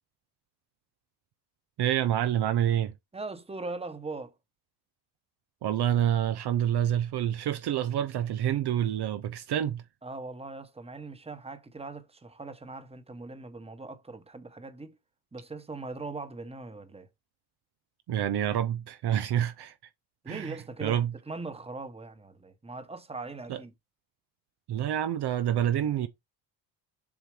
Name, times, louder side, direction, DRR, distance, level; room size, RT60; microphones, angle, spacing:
voice 1, 1.8-2.9 5.6-9.8 18.1-19.7 20.3-21.1 23.5-23.6 24.7-26.1, right 10 dB, 50° right, 0.8 m, -27 dB
voice 2, 3.1-4.3 10.0-15.0 15.3-17.1 20.2-23.7, right 3 dB, 10° right, 1.2 m, -40 dB
7.3 x 2.6 x 4.9 m
supercardioid pair, 75°, 49 cm